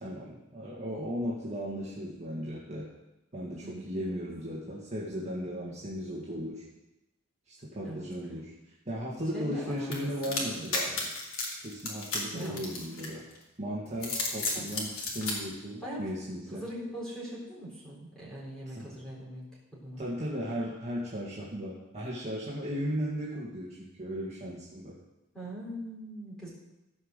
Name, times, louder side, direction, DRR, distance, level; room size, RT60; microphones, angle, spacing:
voice 1, 0.0-2.9 3.3-6.6 7.5-8.5 8.9-11.1 11.6-13.2 13.6-16.7 18.7-18.9 20.0-24.9, equal, 30° right, -7 dB, 2.0 m, -36 dB
voice 2, 3.6-4.2 5.5-5.8 7.8-8.0 9.3-10.7 12.3-12.6 14.5-14.7 15.8-16.0 16.5-20.0 25.3-26.5, equal, 5° left, -7 dB, 4.3 m, -41 dB
sound 1, 9.9-13.4 13.9-15.4, left 3 dB, 80° left, 2.9 m, -33 dB
15.5 x 5.5 x 6.6 m, 0.97 s
head